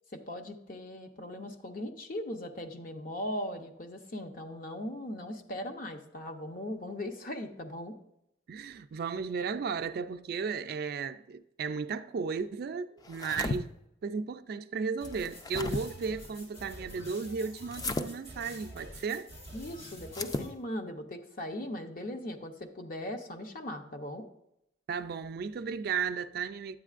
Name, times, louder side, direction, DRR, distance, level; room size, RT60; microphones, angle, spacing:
voice 1, 0.1-8.0 19.5-24.3, left 1 dB, 50° left, 0.7 m, -39 dB
voice 2, 8.5-13.7 14.0-19.3 24.9-26.8, right 5 dB, 55° right, 0.3 m, -35 dB
sound 1, 13.0-13.6 15.0-15.8 17.7-18.1 20.1-20.5, left 2 dB, 20° left, 0.4 m, -34 dB
sound 2, 15.0-20.5, equal, 85° left, 3.5 m, -47 dB
9.9 x 8.0 x 2.4 m
head